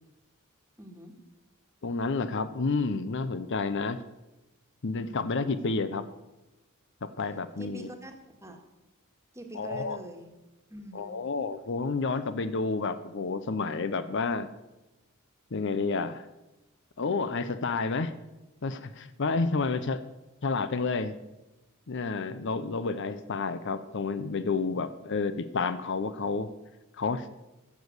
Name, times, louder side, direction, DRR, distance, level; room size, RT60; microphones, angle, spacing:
voice 1, 0.8-1.1 7.6-8.6 9.3-10.3 10.7-11.2, right 1 dB, 15° right, 4 dB, 1.6 m, -44 dB
voice 2, 1.8-4.0 4.8-6.0 7.0-7.9 9.6-10.0 10.9-14.5 15.5-16.3 17.0-18.1 18.6-20.0 20.4-21.2 21.9-26.5 27.0-27.3, left 4 dB, 60° left, 12 dB, 0.7 m, -30 dB
14.5 x 7.2 x 6.6 m, 1.0 s
head